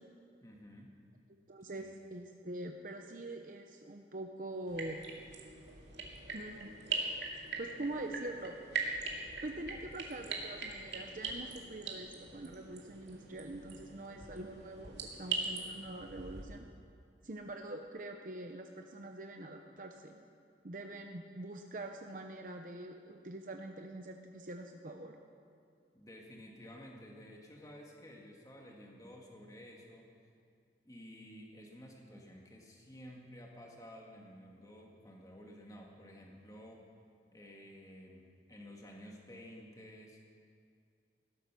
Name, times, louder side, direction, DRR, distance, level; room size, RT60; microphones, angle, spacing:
voice 1, 0.4-1.0 1.8-1.9 25.9-30.1 30.8-36.8 37.3-40.2, equal, 20° left, 0 dB, 2.1 m, -52 dB
voice 2, 1.5-5.0 6.3-6.7 7.6-8.7 9.4-16.7 17.2-20.2 20.6-25.2, right 2 dB, 50° right, 4 dB, 0.9 m, -44 dB
sound 1, 4.7-16.4, right 4 dB, 75° right, 2.5 m, -41 dB
17.0 x 13.0 x 6.2 m, 2.3 s
head